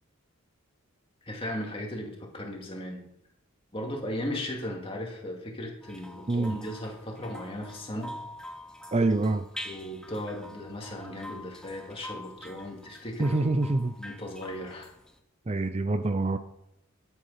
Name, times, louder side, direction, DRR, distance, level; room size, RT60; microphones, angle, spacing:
voice 1, 1.2-3.0 3.7-8.1 9.6-13.4 14.0-14.9, left 1 dB, 25° left, 0 dB, 2.3 m, -36 dB
sound 1, 5.8-15.2, equal, 5° left, 0.9 m, -45 dB
voice 2, 8.9-9.4 13.2-13.9 15.5-16.4, right 2 dB, 30° right, 10 dB, 0.5 m, -25 dB
12.0 x 8.2 x 5.6 m, 0.80 s
head